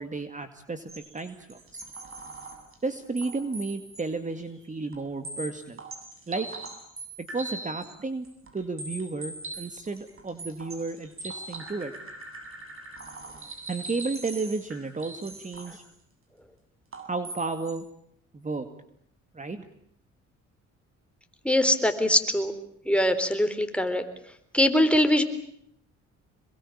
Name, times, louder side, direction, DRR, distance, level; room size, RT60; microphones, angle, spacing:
voice 1, 0.0-1.8 2.8-5.8 6.3-6.5 7.3-8.3 8.5-11.9 13.7-15.8 17.1-17.9 18.3-18.7 19.3-19.7, right 3 dB, 25° right, 9 dB, 2.1 m, -33 dB
sound 1, 0.9-2.7 3.2-4.1 4.4-4.5 4.9-5.0 5.2-7.9 8.2-15.8 16.9-17.8, right 2 dB, 45° right, 7.8 m, -41 dB
voice 2, 21.4-22.5 22.9-24.0 24.5-25.2, left 1 dB, 5° left, 8 dB, 4.0 m, -22 dB
27.0 x 22.5 x 8.6 m, 0.69 s
cardioid pair, 90°, 30 cm